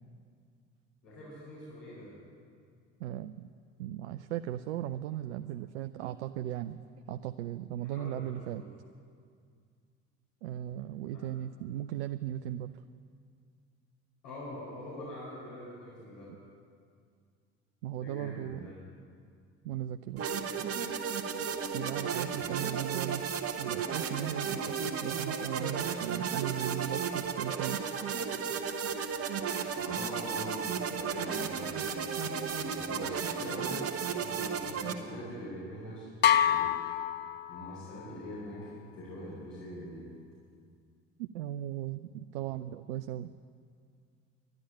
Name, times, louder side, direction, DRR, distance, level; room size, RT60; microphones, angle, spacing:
voice 1, 1.0-2.1 7.8-8.7 11.1-11.2 14.2-16.3 17.9-18.7 22.3-22.4 29.7-31.7 32.6-37.0 37.5-40.0, left 1 dB, 65° left, -9 dB, 5.1 m, -43 dB
voice 2, 3.0-3.5 3.8-6.8 7.1-8.6 10.4-12.8 17.8-18.7 19.6-20.3 21.7-23.2 23.6-27.9 41.2-43.3, right 12 dB, 65° right, 9 dB, 0.5 m, -37 dB
sound 1, 20.2-34.9, right 6 dB, 40° right, 1.2 m, -34 dB
sound 2, 36.2-38.0, left 9 dB, 30° left, 0.6 m, -27 dB
12.0 x 11.5 x 8.8 m, 2.2 s
figure-of-eight pair, 55°, 37 cm